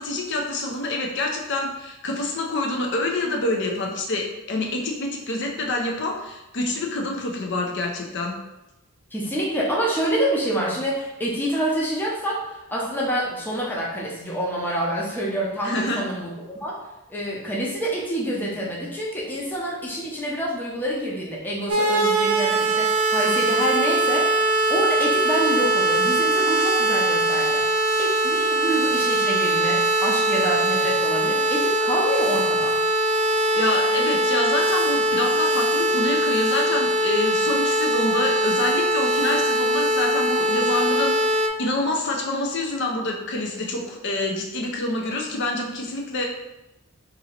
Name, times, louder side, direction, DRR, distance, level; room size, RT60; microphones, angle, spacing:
voice 1, 0.0-8.4 15.6-16.0 33.5-46.3, left 2 dB, 60° left, 1 dB, 0.6 m, -27 dB
voice 2, 9.1-16.3 16.6-16.8 17.1-24.3 24.7-27.6 28.0-32.8, right 1 dB, 10° left, -5 dB, 0.6 m, -27 dB
sound 1, 21.7-41.5, right 1 dB, 85° right, 0.5 m, -21 dB
2.8 x 2.7 x 4.2 m, 0.94 s
head